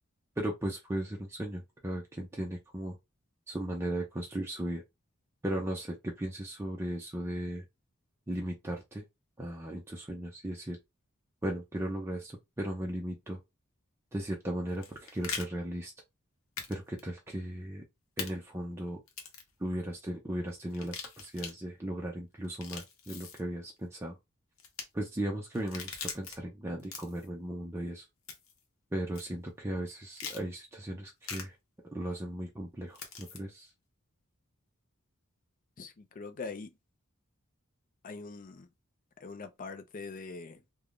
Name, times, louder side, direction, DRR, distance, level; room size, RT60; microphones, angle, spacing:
voice 1, 0.4-3.0 3.5-4.8 5.4-7.6 8.3-9.0 9.4-10.8 11.4-13.4 14.1-15.9 16.7-17.8 18.2-19.0 19.6-24.2 24.9-28.0 28.9-31.5 31.9-33.7, right 1 dB, 10° right, 0.5 m, -36 dB
sound 1, 14.7-15.5 16.6-16.7 17.0-17.1 18.2-18.3 19.1-19.5 20.7-21.5 22.4-23.4 24.6-24.8 25.5-26.4 26.8-27.3 28.3-28.6 29.1-29.2 30.2-30.4 31.2-31.4 32.9-33.4, left 6 dB, 80° left, 0.8 m, -41 dB
voice 2, 35.8-36.8 38.0-38.7 39.2-40.6, left 4 dB, 40° left, 0.5 m, -43 dB
3.4 x 2.2 x 2.4 m
head